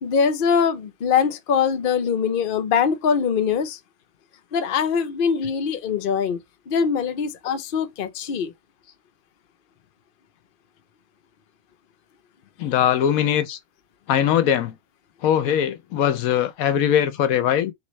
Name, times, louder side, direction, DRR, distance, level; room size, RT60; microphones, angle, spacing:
voice 1, 0.0-3.8 4.5-6.4 6.7-8.5, left 6 dB, 45° left, 0.8 m, -22 dB
voice 2, 12.6-13.6 14.1-14.7 15.2-17.7, left 10 dB, 75° left, 1.0 m, -21 dB
4.2 x 3.4 x 3.1 m
omnidirectional pair, 1.5 m